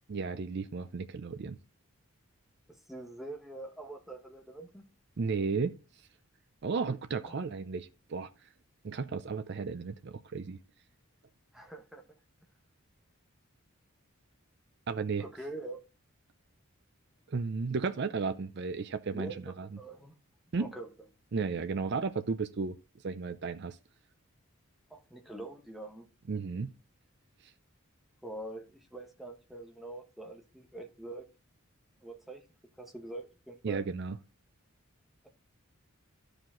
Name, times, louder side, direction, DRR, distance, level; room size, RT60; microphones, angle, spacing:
voice 1, 0.1-1.6 5.2-5.8 6.6-8.3 8.8-10.6 14.9-15.3 17.3-19.7 20.5-20.7 21.3-22.8 23.0-23.8 26.3-26.7 33.6-34.2, right 4 dB, 50° right, 0.5 m, -34 dB
voice 2, 2.7-4.8 7.2-7.3 11.5-12.0 15.2-15.8 19.1-20.1 20.6-20.9 24.9-26.1 28.2-31.2 32.0-32.4 32.8-33.9, right 2 dB, ahead, 1.2 m, -44 dB
12.5 x 5.0 x 3.7 m
head